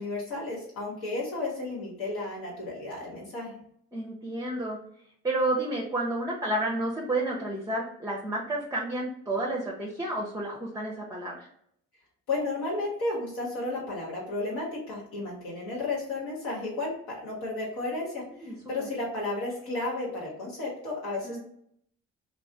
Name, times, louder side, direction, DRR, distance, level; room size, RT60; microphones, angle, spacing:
voice 1, 0.0-3.6 12.3-21.4, left 2 dB, 65° left, -4 dB, 1.1 m, -33 dB
voice 2, 3.9-4.8 5.2-11.5 18.4-18.9 21.2-21.4, right 1 dB, 10° right, -2 dB, 0.6 m, -31 dB
2.4 x 2.0 x 3.8 m, 0.69 s
hypercardioid pair, 50°, 38 cm